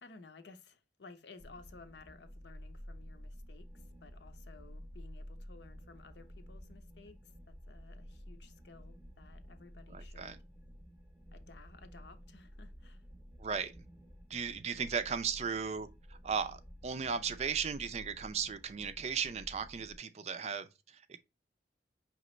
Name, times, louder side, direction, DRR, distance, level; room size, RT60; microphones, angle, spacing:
voice 1, 0.0-10.4 11.3-13.0, left 4 dB, 70° left, 0.7 m, -56 dB
sound 1, 1.4-20.0, equal, 10° right, 0.8 m, -52 dB
voice 2, 9.9-10.4 13.4-13.7 14.3-21.2, right 6 dB, 35° right, 0.4 m, -36 dB
5.0 x 3.0 x 3.1 m
head